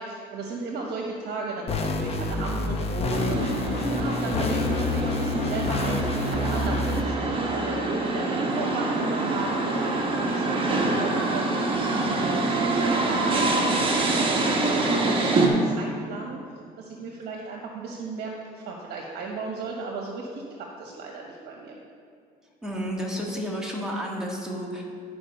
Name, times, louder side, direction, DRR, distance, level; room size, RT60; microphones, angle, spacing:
voice 1, 0.0-6.0 6.3-11.5 12.1-16.4 16.8-21.8, right 3 dB, 70° right, 0 dB, 1.1 m, -35 dB
sound 1, 1.7-7.0, left 3 dB, 35° left, 0.8 m, -28 dB
sound 2, 3.1-15.5, right 2 dB, 30° right, 1.3 m, -25 dB
voice 2, 22.6-24.8, equal, 5° right, -3 dB, 1.7 m, -31 dB
11.5 x 4.6 x 5.5 m, 2.2 s
cardioid pair, 110°, 17 cm